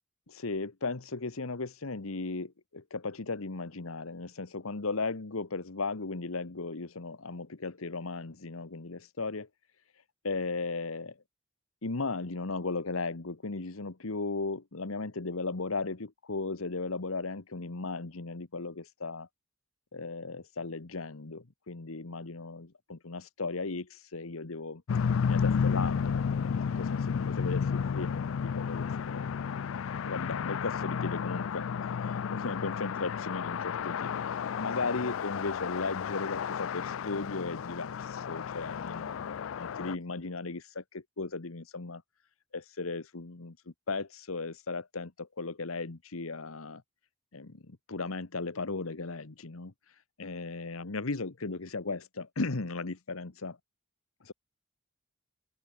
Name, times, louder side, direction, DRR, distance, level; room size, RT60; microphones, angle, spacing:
voice 1, 0.3-9.5 10.2-11.2 11.8-19.3 19.9-24.8 25.2-29.2 30.0-42.0 42.5-43.6 43.9-46.8 47.3-53.6 54.2-54.3, left 3 dB, 90° left, 1.3 m, -36 dB
sound 1, 24.9-40.0, left 6 dB, 75° left, 0.4 m, -32 dB
open air
head